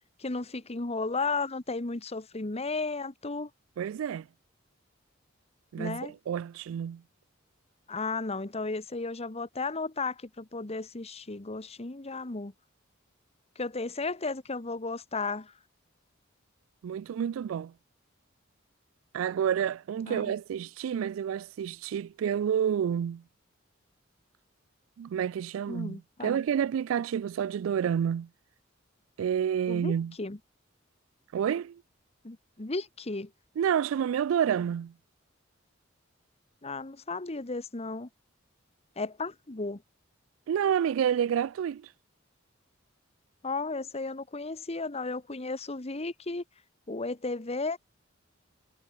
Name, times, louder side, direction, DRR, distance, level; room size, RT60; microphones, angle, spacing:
voice 1, 0.2-3.5 5.7-6.1 7.9-12.5 13.6-15.5 20.1-20.3 25.7-26.4 29.7-29.9 30.2-30.4 32.2-33.3 36.6-38.1 39.0-39.8 43.4-46.4 46.9-47.8, left 3 dB, 30° left, 1.2 m, -34 dB
voice 2, 3.8-4.3 5.7-7.0 16.8-17.7 19.1-23.2 25.0-28.3 29.2-30.1 31.3-31.8 33.6-34.9 40.5-41.9, right 8 dB, 80° right, 0.3 m, -29 dB
head